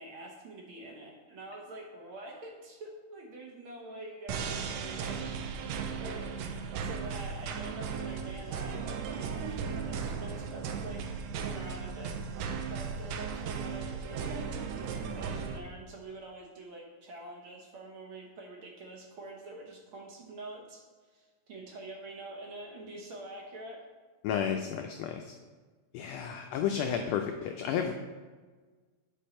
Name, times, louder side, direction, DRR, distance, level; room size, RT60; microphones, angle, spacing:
voice 1, 0.0-5.4 6.0-6.3 6.8-12.3 12.7-20.8 21.1-23.8, right 2 dB, 60° right, -1 dB, 1.5 m, -46 dB
sound 1, 4.3-15.6, right 6 dB, 80° right, 1.7 m, -36 dB
voice 2, 24.2-25.3 25.9-27.9, left 8 dB, 85° left, 5 dB, 1.4 m, -32 dB
8.5 x 5.2 x 4.3 m, 1.4 s
omnidirectional pair, 3.4 m